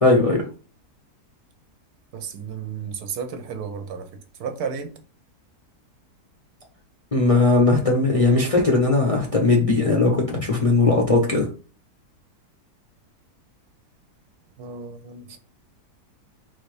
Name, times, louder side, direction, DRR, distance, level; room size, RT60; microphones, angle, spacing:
voice 1, 0.0-0.4 7.1-11.5, left 3 dB, 30° left, 0.6 m, -18 dB
voice 2, 2.1-4.1 4.4-4.9 14.6-15.4, right 6 dB, 75° right, 1.2 m, -33 dB
4.0 x 2.7 x 4.7 m
omnidirectional pair, 1.7 m